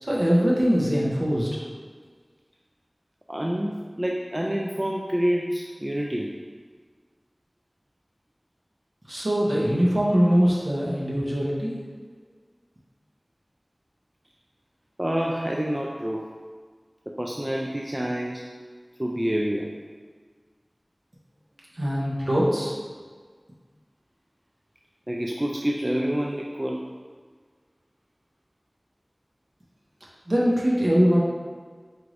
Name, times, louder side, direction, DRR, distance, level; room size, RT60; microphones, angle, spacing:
voice 1, 0.0-1.5 9.1-11.7 21.7-22.7 30.3-31.2, equal, 60° right, -6 dB, 1.0 m, -22 dB
voice 2, 3.3-6.4 15.0-16.3 17.1-18.5 19.0-19.8 25.1-26.8, equal, 25° right, -1 dB, 0.3 m, -27 dB
4.6 x 2.5 x 3.2 m, 1.5 s
wide cardioid pair, 40°, 0 cm